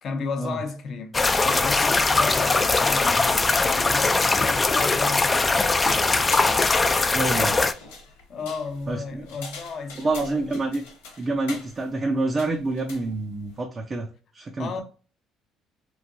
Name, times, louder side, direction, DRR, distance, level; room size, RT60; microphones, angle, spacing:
voice 1, 0.0-5.7 8.3-10.5 14.6-14.8, left 4 dB, 55° left, 0.7 m, -34 dB
sound 1, 1.1-7.7, left 3 dB, 25° left, 0.3 m, -21 dB
sound 2, 2.0-13.6, left 3 dB, 90° left, 0.7 m, -43 dB
voice 2, 7.1-7.6 8.9-9.3 10.0-10.8 11.2-14.1 14.3-14.8, right 2 dB, 35° right, 0.5 m, -27 dB
3.1 x 2.5 x 2.5 m
hypercardioid pair, 65°, 0 cm